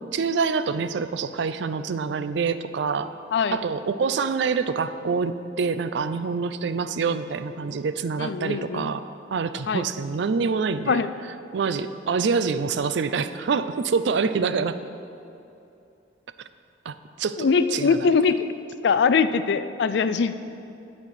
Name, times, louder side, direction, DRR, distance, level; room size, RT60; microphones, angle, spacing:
voice 1, 0.1-3.1 3.5-9.0 9.3-11.1 11.5-14.8 16.9-18.1, right 5 dB, 70° right, 11 dB, 0.4 m, -26 dB
voice 2, 8.2-8.9 9.7-9.9 10.9-11.1 17.4-18.4 18.8-20.4, left 5 dB, 65° left, 12 dB, 0.4 m, -22 dB
9.6 x 4.4 x 7.7 m, 2.7 s
head